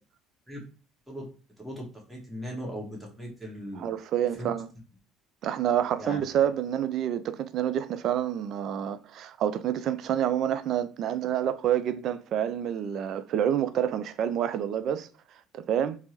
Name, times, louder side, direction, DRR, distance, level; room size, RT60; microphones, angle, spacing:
voice 1, 1.6-3.8 4.4-4.5 6.0-6.2, equal, 5° right, 1.3 m, -38 dB
voice 2, 3.8-4.7 5.4-15.1 15.5-16.0, right 10 dB, 50° right, 0.3 m, -28 dB
4.2 x 2.0 x 2.8 m
figure-of-eight pair, 60°, 0 cm